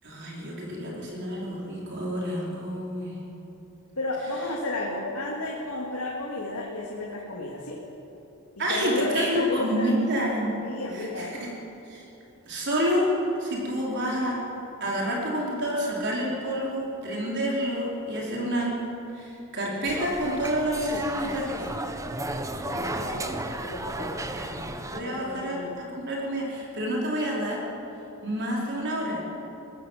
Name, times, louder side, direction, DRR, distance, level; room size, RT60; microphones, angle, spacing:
voice 1, 0.0-3.1 8.6-10.6 10.9-11.5 11.8-12.0 12.5-13.1 13.4-14.4 14.8-18.7 19.1-21.8 24.4-24.6 24.9-27.6 28.2-29.2, equal, 55° right, -3 dB, 5.0 m, -29 dB
voice 2, 4.0-7.8 8.6-9.9 10.6-11.3 22.6-24.2 25.0-25.8, left 2 dB, 75° left, -3 dB, 2.9 m, -32 dB
sound 1, 19.8-25.0, right 1 dB, 15° right, 1.0 m, -33 dB
22.5 x 17.5 x 7.7 m, 2.9 s
head